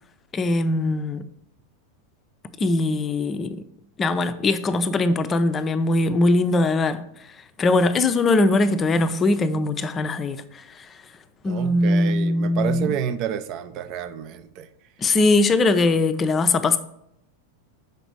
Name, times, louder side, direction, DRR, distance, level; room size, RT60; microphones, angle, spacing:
voice 1, 0.3-1.2 2.6-3.6 4.0-7.0 7.6-10.9 11.4-12.9 15.0-16.8, left 2 dB, 20° left, 0.6 m, -21 dB
voice 2, 11.4-14.7, right 9 dB, 40° right, 0.6 m, -29 dB
6.6 x 5.0 x 5.2 m
figure-of-eight pair, 90°, 0 cm